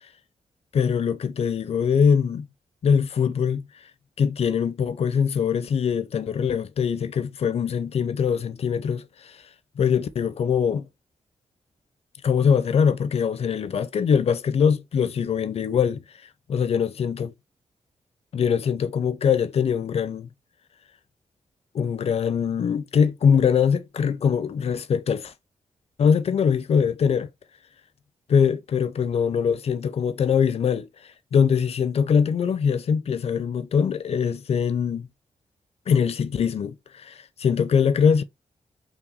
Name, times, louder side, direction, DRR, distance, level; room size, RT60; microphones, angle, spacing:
voice 1, 0.7-2.5 2.8-3.7 4.2-9.4 9.8-10.9 12.2-16.0 16.5-17.3 18.3-20.3 21.7-25.3 26.0-27.3 28.3-30.9 31.3-35.1 35.9-38.2, left 7 dB, 55° left, 0.5 m, -22 dB
5.7 x 2.2 x 2.4 m
wide cardioid pair, 105°, 12 cm